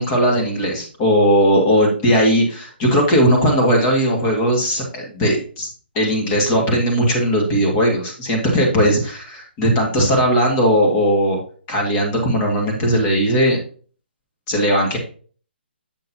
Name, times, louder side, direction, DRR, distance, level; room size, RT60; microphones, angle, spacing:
voice 1, 0.0-5.7 6.0-11.4 11.7-13.6 14.5-15.0, equal, 25° left, 1 dB, 1.8 m, -18 dB
7.6 x 6.3 x 2.8 m, 0.43 s
hypercardioid pair, 155°, 6 cm